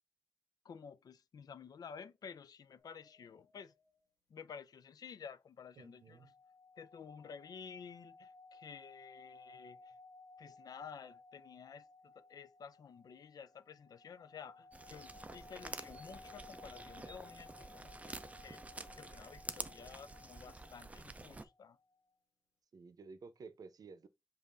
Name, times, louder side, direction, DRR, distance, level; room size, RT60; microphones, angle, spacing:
voice 1, 0.6-3.7 4.3-6.2 6.8-9.9 10.4-18.6 18.9-21.8, left 6 dB, 90° left, 0.4 m, -52 dB
sound 1, 2.8-3.9 5.9-22.0, left 3 dB, 60° left, 1.2 m, -59 dB
voice 2, 5.8-6.3 22.7-24.1, right 4 dB, 75° right, 0.6 m, -53 dB
sound 2, 14.7-21.4, right 2 dB, 20° right, 0.4 m, -49 dB
5.2 x 2.5 x 3.7 m
wide cardioid pair, 100°, 6 cm